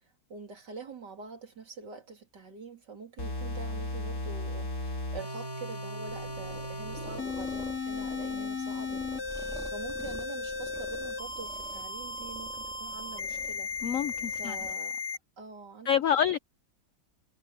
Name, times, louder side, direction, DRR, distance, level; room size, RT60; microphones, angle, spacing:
voice 1, 0.3-13.7 14.4-15.0 15.4-16.0, right 4 dB, 60° right, 3.7 m, -45 dB
sound 1, 3.2-15.2, left 3 dB, 50° left, 5.0 m, -36 dB
sound 2, 6.1-14.7, equal, ahead, 3.2 m, -48 dB
voice 2, 13.8-14.6 15.9-16.4, left 9 dB, 70° left, 0.7 m, -27 dB
omnidirectional pair, 2.1 m